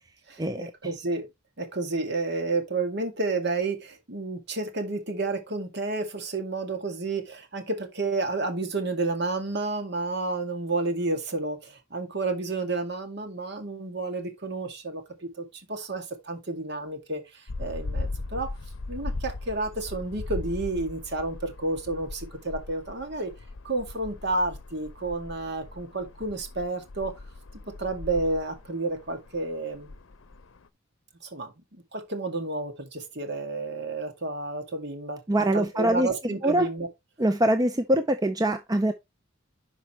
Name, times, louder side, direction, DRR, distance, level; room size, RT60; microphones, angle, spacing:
voice 1, 0.3-1.3 1.6-18.5 18.9-23.3 23.6-27.1 27.8-29.9 31.2-35.2 35.5-36.9, right 3 dB, 55° right, 2.1 m, -31 dB
sound 1, 17.5-30.7, left 2 dB, 75° left, 0.6 m, -39 dB
voice 2, 35.3-36.1 36.4-36.7 37.2-38.9, right 1 dB, 20° right, 0.6 m, -23 dB
10.5 x 5.5 x 3.1 m
head